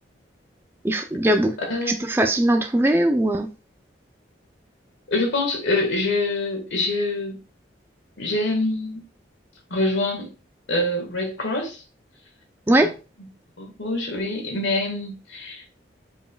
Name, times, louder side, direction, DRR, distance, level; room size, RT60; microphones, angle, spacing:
voice 1, 0.8-1.5 1.9-3.5 12.7-12.9, right 1 dB, 10° right, 5 dB, 0.3 m, -20 dB
voice 2, 1.6-2.0 5.1-7.4 8.2-9.0 9.7-10.3 10.7-11.8 12.8-12.9 13.2-13.3 13.6-15.6, left 2 dB, 80° left, 2 dB, 1.6 m, -25 dB
5.1 x 4.6 x 2.2 m, 0.33 s
head